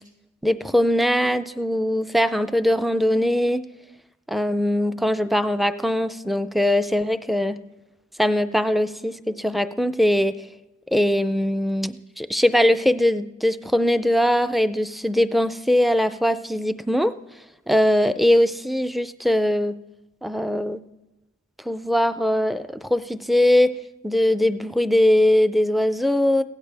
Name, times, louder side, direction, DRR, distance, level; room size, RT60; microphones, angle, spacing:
voice 1, 0.4-3.6 4.3-7.6 8.2-10.4 10.9-17.2 17.7-19.8 20.2-20.8 21.7-23.8 24.0-26.4, left 1 dB, ahead, 11 dB, 0.4 m, -21 dB
21.5 x 16.5 x 3.4 m, 1.0 s
head